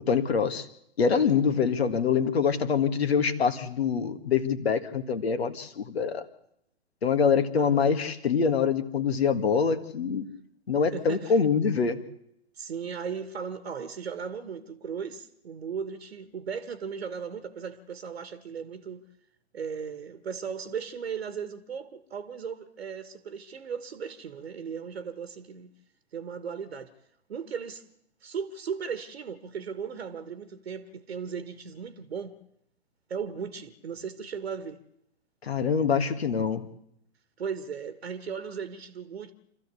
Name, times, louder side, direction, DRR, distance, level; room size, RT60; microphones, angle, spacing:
voice 1, 0.1-0.7 1.0-6.2 7.0-10.2 10.7-12.0 35.4-36.6, left 6 dB, 60° left, 1.9 m, -25 dB
voice 2, 7.5-7.9 10.9-11.3 12.5-19.0 19.5-25.7 26.1-26.9 27.3-27.8 28.2-32.3 33.1-34.8 37.4-39.3, right 6 dB, 65° right, 1.5 m, -37 dB
26.0 x 14.0 x 8.3 m
figure-of-eight pair, 120°, 35 cm